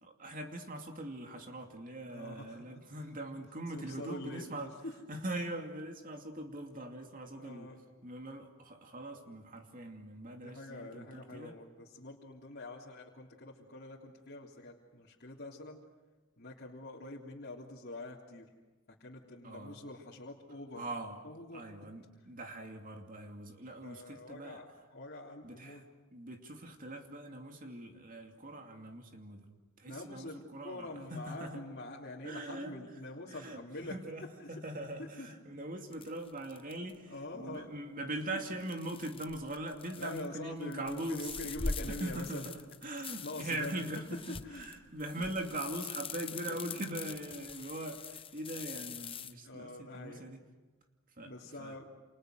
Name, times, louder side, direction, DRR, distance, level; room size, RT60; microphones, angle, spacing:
voice 1, 0.0-4.7 5.1-7.7 8.0-11.6 19.4-19.8 20.8-21.2 21.5-24.6 25.4-25.8 26.1-31.6 32.2-32.8 33.3-41.3 41.6-50.4 51.2-51.3 51.6-51.8, right 1 dB, 40° right, 4 dB, 2.6 m, -42 dB
voice 2, 2.1-2.7 3.7-4.5 4.8-4.9 7.3-7.8 10.4-15.8 16.4-18.5 19.0-20.8 21.2-21.6 23.8-24.7 24.9-25.8 29.9-34.0 34.4-34.5 35.0-35.3 37.1-37.8 38.3-38.4 40.0-42.5 43.2-43.8 44.4-44.7 45.2-45.3 49.4-50.2 51.2-51.9, left 2 dB, 50° left, -4 dB, 3.4 m, -45 dB
sound 1, 35.9-37.0 38.6-40.3 40.6-49.3, left 4 dB, 25° left, 1.0 m, -43 dB
29.5 x 28.5 x 6.5 m, 1.3 s
head